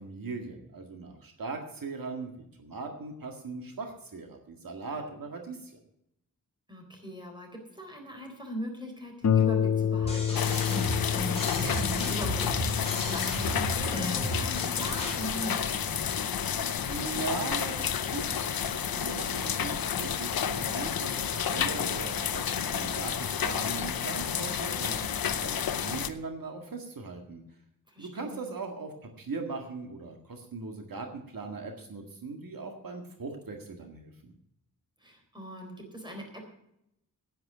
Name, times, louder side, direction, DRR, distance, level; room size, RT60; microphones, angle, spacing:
voice 1, 0.0-5.7 16.9-27.4 28.0-34.3, right 3 dB, 75° right, 3 dB, 1.9 m, -39 dB
voice 2, 6.7-16.1 27.9-28.5 35.0-36.4, equal, 15° right, 2 dB, 4.0 m, -41 dB
Harp, 9.2-18.4 19.3-19.4 19.8-19.9, left 8 dB, 50° left, 0.7 m, -31 dB
sound 1, 10.0-15.2, equal, 15° left, 4.8 m, -34 dB
sound 2, 10.3-26.1, left 8 dB, 85° left, 0.8 m, -31 dB
10.5 x 9.4 x 7.5 m, 0.80 s
wide cardioid pair, 130°, 35 cm